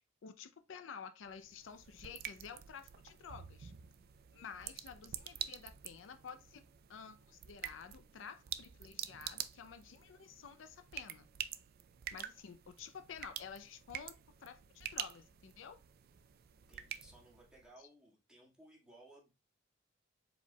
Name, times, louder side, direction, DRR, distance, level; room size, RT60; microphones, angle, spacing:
voice 1, 0.0-3.7 4.3-6.6 6.9-11.2 12.1-15.8, left 6 dB, 75° left, 0.4 m, -51 dB
sound 1, 1.2-17.7, right 10 dB, 55° right, 0.4 m, -48 dB
voice 2, 16.7-19.3, right 1 dB, 5° right, 1.7 m, -60 dB
4.7 x 4.3 x 2.2 m
head